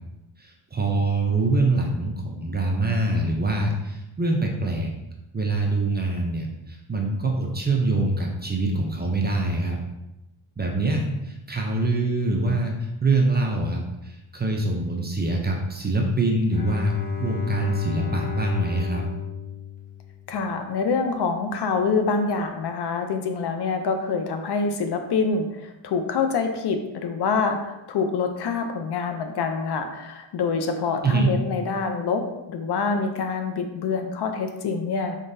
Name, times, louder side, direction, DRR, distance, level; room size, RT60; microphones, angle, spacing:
voice 1, 0.4-4.9 5.3-9.8 10.6-12.8 13.0-16.9 17.2-19.0 31.0-31.3, right 2 dB, 20° right, 1 dB, 0.5 m, -24 dB
Bowed string instrument, 16.5-20.5, left 7 dB, 15° left, 0.9 m, -32 dB
voice 2, 20.3-35.2, left 4 dB, 55° left, 6 dB, 0.6 m, -26 dB
3.8 x 3.6 x 2.6 m, 0.95 s
cardioid pair, 100°, 48 cm